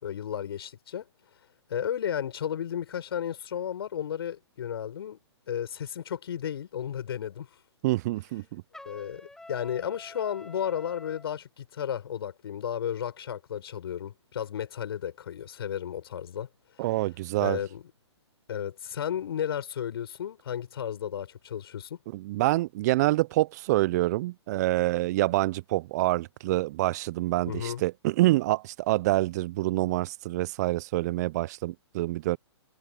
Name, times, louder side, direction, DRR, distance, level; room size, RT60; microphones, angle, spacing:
voice 1, 0.0-1.0 1.7-5.2 5.5-7.5 8.8-16.5 17.4-17.8 18.5-22.0 27.5-27.8, left 9 dB, 55° left, 6.2 m, -33 dB
voice 2, 7.8-8.6 16.8-17.6 22.1-32.4, right 18 dB, 35° right, 0.8 m, -26 dB
Trumpet, 8.7-11.3, left 2 dB, 5° left, 2.1 m, -48 dB
figure-of-eight pair, 125°, 15 cm